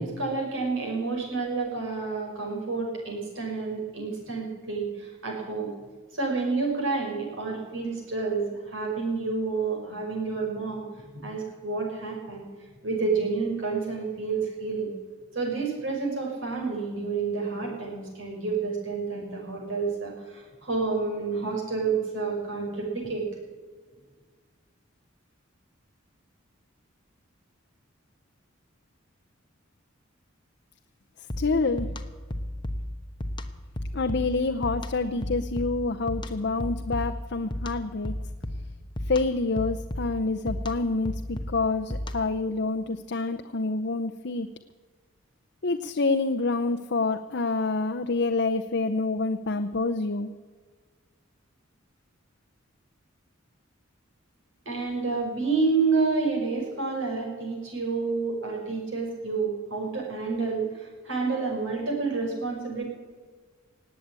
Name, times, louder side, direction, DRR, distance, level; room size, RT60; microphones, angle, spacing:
voice 1, 0.0-5.7 6.1-10.9 11.2-12.4 12.8-14.9 15.3-23.2 54.7-62.8, right 4 dB, 65° right, -1 dB, 5.8 m, -29 dB
sound 1, 31.3-42.4, left 1 dB, 25° left, 1.0 m, -35 dB
voice 2, 31.4-31.9 33.9-38.1 39.1-44.5 45.6-50.3, left 3 dB, 55° left, 6 dB, 0.7 m, -27 dB
19.0 x 8.3 x 8.8 m, 1.5 s
head